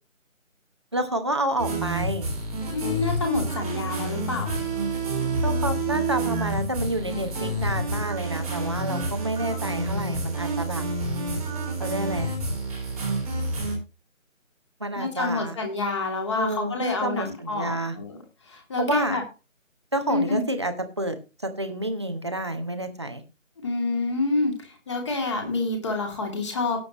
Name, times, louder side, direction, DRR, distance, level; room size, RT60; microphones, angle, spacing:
voice 1, 0.9-2.3 5.4-10.8 11.8-12.3 14.8-15.6 16.3-18.0 18.8-19.2 19.9-21.2 21.4-23.2, right 1 dB, 20° right, 7 dB, 1.0 m, -29 dB
sound 1, 1.6-13.8, right 2 dB, 5° right, 1.8 m, -28 dB
voice 2, 2.7-4.5 15.0-18.2 18.5-19.2 20.1-20.4 23.6-26.8, left 3 dB, 20° left, 3 dB, 2.6 m, -28 dB
18.0 x 7.8 x 3.0 m, 0.29 s
figure-of-eight pair, 160°, 40 cm